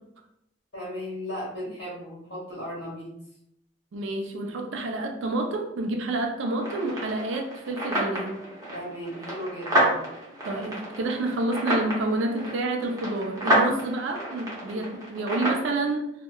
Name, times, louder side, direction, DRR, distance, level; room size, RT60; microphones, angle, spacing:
voice 1, 0.7-3.1 8.7-10.0 14.7-14.8, equal, 55° left, -6 dB, 1.4 m, -36 dB
voice 2, 3.9-8.4 10.4-16.1, right 2 dB, 75° right, 3 dB, 0.4 m, -29 dB
sound 1, 6.6-15.7, right 1 dB, 20° right, 0.7 m, -29 dB
2.7 x 2.1 x 2.2 m, 0.80 s
head